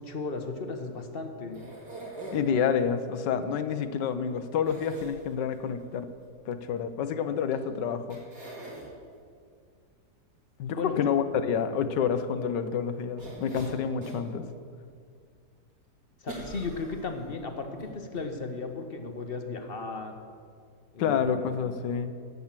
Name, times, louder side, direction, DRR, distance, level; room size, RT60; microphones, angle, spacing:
voice 1, 0.0-1.6 10.8-11.1 16.2-20.2 20.9-21.6, left 3 dB, 40° left, 5 dB, 1.0 m, -35 dB
sound 1, 1.5-2.7 4.6-5.6 7.5-7.6 8.1-8.9 13.2-14.3 14.8-14.9 16.3-17.3 17.8-17.9 18.2-18.3, right 2 dB, 60° right, 3.0 m, -42 dB
voice 2, 2.3-6.1 6.4-8.2 10.6-14.4 21.0-22.1, left 7 dB, 85° left, 10 dB, 1.4 m, -28 dB
11.5 x 8.6 x 7.4 m, 2.2 s
omnidirectional pair, 1.9 m